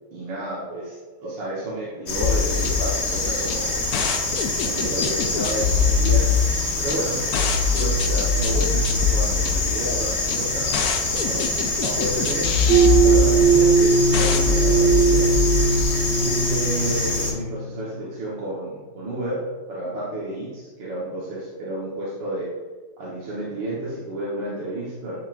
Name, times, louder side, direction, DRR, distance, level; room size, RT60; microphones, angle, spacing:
voice 1, 0.1-3.7 4.6-6.3 6.8-7.2 7.7-10.7 11.3-11.5 11.8-15.3 16.2-22.5 23.0-25.2, right 1 dB, 70° right, -8 dB, 2.1 m, -31 dB
sound 1, 2.1-17.3, left 2 dB, 40° left, 1.3 m, -26 dB
sound 2, 2.2-15.8, left 5 dB, 70° left, 0.9 m, -24 dB
sound 3, 12.7-17.9, right 5 dB, 40° right, 1.8 m, -19 dB
10.5 x 5.5 x 2.6 m, 1.3 s
omnidirectional pair, 2.1 m